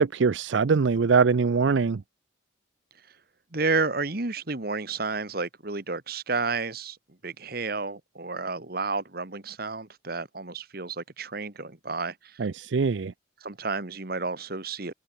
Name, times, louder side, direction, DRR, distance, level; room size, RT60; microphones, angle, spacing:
voice 1, 0.0-2.0 12.4-13.1, right 5 dB, 70° right, 0.5 m, -22 dB
voice 2, 3.5-7.0 7.2-12.4 13.4-14.9, right 3 dB, 50° right, 1.6 m, -31 dB
head